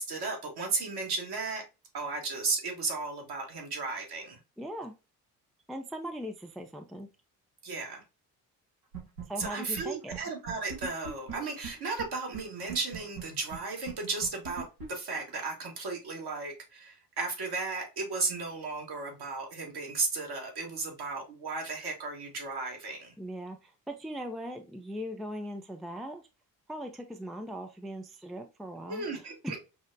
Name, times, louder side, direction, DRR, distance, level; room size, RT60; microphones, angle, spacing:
voice 1, 0.0-1.6 1.9-4.4 7.6-8.0 9.4-23.1 28.9-29.6, right 3 dB, 55° right, 1 dB, 1.4 m, -35 dB
voice 2, 4.6-4.9 5.7-7.1 9.3-10.1 23.2-26.2 26.7-29.6, equal, ahead, 5 dB, 0.4 m, -39 dB
sound 1, 8.9-9.5 9.7-9.8 10.1-10.2 10.5-12.0 12.3-12.4 12.7-15.6, right 6 dB, 80° right, 1.4 m, -40 dB
5.4 x 2.1 x 2.5 m, 0.29 s
hypercardioid pair, 45°, 48 cm